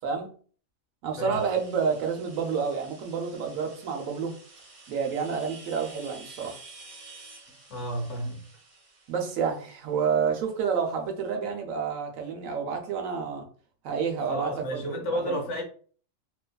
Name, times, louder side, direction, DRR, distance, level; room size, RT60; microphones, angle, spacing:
voice 1, 1.0-4.4 4.9-6.6 9.1-13.5 13.8-15.4, right 6 dB, 90° right, 1.1 m, -29 dB
sound 1, 1.3-10.9, right 3 dB, 45° right, 0.7 m, -50 dB
voice 2, 7.7-8.4 14.2-15.6, equal, 65° left, 1.1 m, -31 dB
2.9 x 2.3 x 2.2 m
omnidirectional pair, 1.4 m